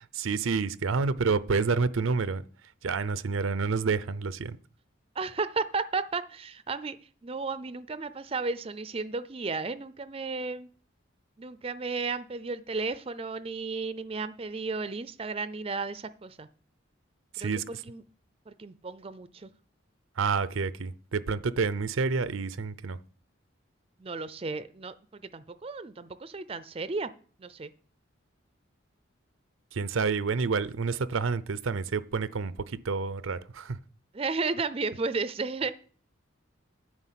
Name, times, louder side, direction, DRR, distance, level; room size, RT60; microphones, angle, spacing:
voice 1, 0.2-2.4 2.8-4.6 17.4-17.6 20.2-23.0 29.7-32.5 32.8-33.8, right 4 dB, 85° right, 0.6 m, -28 dB
voice 2, 5.2-7.0 7.2-10.7 11.4-16.5 17.4-18.0 18.5-19.5 24.0-27.1 27.4-27.7 34.1-35.7, right 4 dB, 30° right, 0.4 m, -33 dB
9.8 x 6.0 x 7.5 m
head